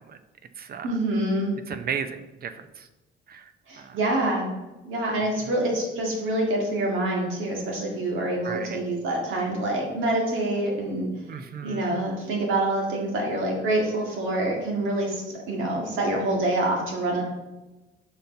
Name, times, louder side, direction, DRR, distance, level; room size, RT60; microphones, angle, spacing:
voice 1, 0.8-1.5 3.7-4.5 4.8-11.1 11.6-17.2, right 1 dB, 80° right, 0 dB, 1.9 m, -26 dB
voice 2, 1.7-2.5 3.3-3.4 3.8-4.0 8.4-8.8 11.3-12.0, right 7 dB, 50° right, 10 dB, 0.6 m, -34 dB
5.4 x 4.3 x 5.2 m, 1.1 s
cardioid pair, 90°, 20 cm